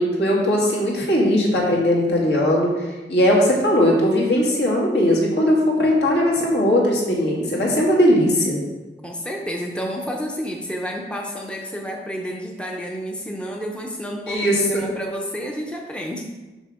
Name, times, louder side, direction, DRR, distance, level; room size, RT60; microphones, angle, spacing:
voice 1, 0.0-2.7 3.1-8.6 14.3-14.8, equal, 75° left, -3 dB, 2.2 m, -19 dB
voice 2, 9.0-16.3, equal, 5° left, 0 dB, 0.7 m, -30 dB
6.4 x 6.0 x 4.9 m, 1.1 s
head